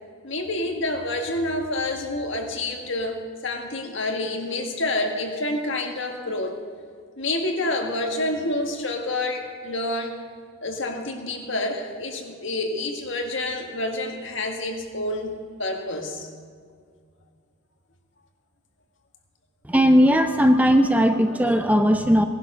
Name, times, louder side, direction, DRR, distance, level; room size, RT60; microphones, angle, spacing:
voice 1, 0.2-3.2 3.4-6.6 7.2-10.2 10.6-16.3, left 2 dB, 65° left, 3 dB, 1.8 m, -28 dB
voice 2, 19.6-22.2, equal, 5° right, 7 dB, 0.5 m, -18 dB
18.0 x 11.5 x 5.7 m, 2.1 s
head